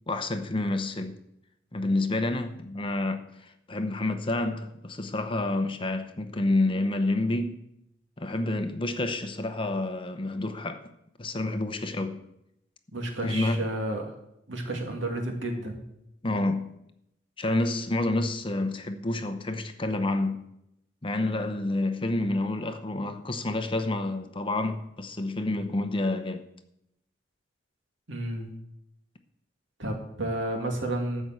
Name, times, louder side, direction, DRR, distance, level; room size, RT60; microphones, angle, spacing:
voice 1, 0.1-1.2 1.7-7.6 8.2-10.9 11.2-12.2 13.2-13.7 16.2-16.7 17.4-20.5 21.0-26.5, left 2 dB, 25° left, 0.8 m, -29 dB
voice 2, 12.9-14.1 14.5-15.8 28.1-28.5 29.8-31.2, right 1 dB, 75° right, 2.4 m, -31 dB
13.0 x 5.5 x 7.8 m
head